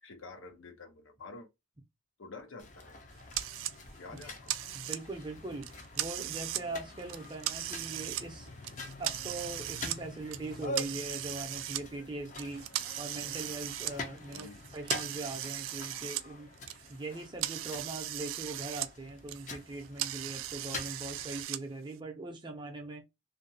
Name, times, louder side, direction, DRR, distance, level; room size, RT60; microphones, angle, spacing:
voice 1, 0.0-1.5 2.2-3.0 4.0-4.5 14.3-14.6, left 3 dB, 80° left, 0.6 m, -48 dB
sound 1, 2.6-21.4, left 2 dB, 35° left, 0.5 m, -45 dB
sound 2, 3.3-3.8 4.2-5.2 5.6-6.6 7.0-8.2 8.6-10.0 10.3-11.8 12.4-16.3 16.5-18.9 19.2-21.6, right 13 dB, 85° right, 0.3 m, -38 dB
voice 2, 4.7-8.5 9.0-12.7 13.0-16.5 16.9-23.0, right 2 dB, 25° right, 0.6 m, -41 dB
2.6 x 2.3 x 2.6 m
head